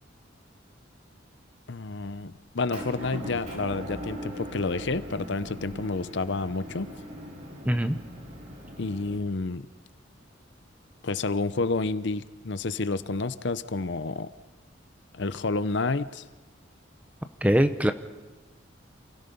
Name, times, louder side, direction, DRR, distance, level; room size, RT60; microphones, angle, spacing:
voice 1, 1.7-6.9 8.8-9.7 11.0-14.3 15.1-16.2, left 3 dB, 65° left, 14 dB, 0.7 m, -29 dB
Motor vehicle (road) / Engine, 2.7-9.2, equal, 40° right, 4.5 m, -40 dB
voice 2, 7.7-8.0 17.4-17.9, equal, 5° right, 9 dB, 0.8 m, -22 dB
28.5 x 17.0 x 5.4 m, 1.2 s
head